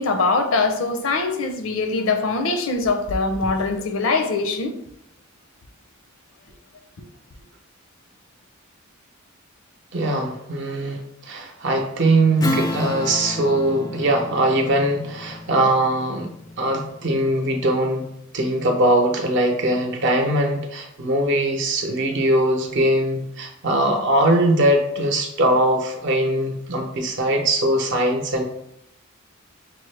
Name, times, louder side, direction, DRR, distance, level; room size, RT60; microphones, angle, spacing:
voice 1, 0.0-4.7, left 3 dB, 70° left, 0.5 m, -22 dB
voice 2, 9.9-16.3 16.6-18.1 18.3-28.4, right 1 dB, 60° right, 0.7 m, -21 dB
Strum, 12.4-17.3, left 2 dB, 20° left, 0.3 m, -31 dB
6.0 x 2.0 x 3.2 m
head